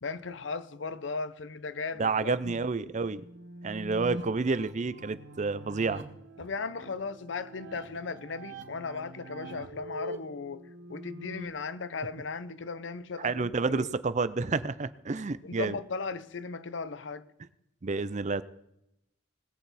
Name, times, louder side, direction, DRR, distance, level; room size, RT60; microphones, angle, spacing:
voice 1, 0.0-2.7 6.4-13.9 15.4-17.2, left 4 dB, 70° left, 0.7 m, -37 dB
voice 2, 2.0-3.2 3.6-6.0 13.2-15.8 17.8-18.4, right 4 dB, 40° right, 0.5 m, -29 dB
sound 1, 2.7-11.5, right 1 dB, 70° right, 1.5 m, -44 dB
20.5 x 8.1 x 4.2 m
head